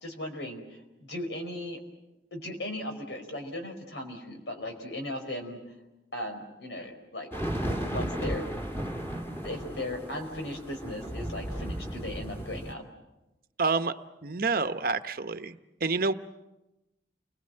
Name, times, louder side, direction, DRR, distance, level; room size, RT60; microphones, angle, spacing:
voice 1, 0.0-1.8 2.3-5.6 6.1-7.3 7.7-8.5 9.4-12.8, left 1 dB, 80° left, 5 dB, 4.7 m, -37 dB
sound 1, 7.3-12.7, equal, 15° left, 2.6 m, -34 dB
voice 2, 13.6-13.9 14.2-16.1, right 4 dB, 55° right, 10 dB, 1.0 m, -28 dB
29.5 x 21.0 x 7.7 m, 0.98 s
head